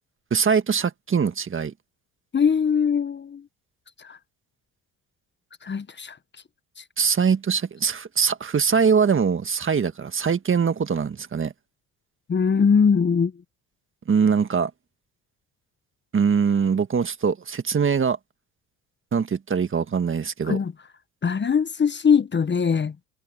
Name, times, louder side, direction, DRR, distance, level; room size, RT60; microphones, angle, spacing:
voice 1, 0.3-1.7 7.0-11.5 14.1-14.7 16.1-18.2 19.1-20.6, right 6 dB, 35° right, 1.7 m, -22 dB
voice 2, 2.3-3.4 4.1-4.2 5.6-6.1 12.3-13.3 20.5-20.7 21.2-22.9, left 6 dB, 30° left, 1.1 m, -21 dB
supercardioid pair, 65°, 35 cm